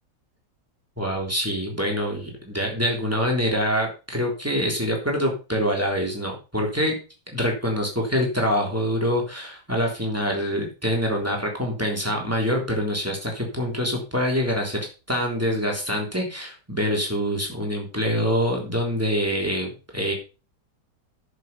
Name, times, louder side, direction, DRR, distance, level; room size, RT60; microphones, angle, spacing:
voice 1, 1.0-7.0 7.3-14.8 15.1-20.1, equal, 10° right, 0 dB, 3.3 m, -25 dB
10.5 x 7.0 x 5.3 m, 0.32 s
omnidirectional pair, 1.8 m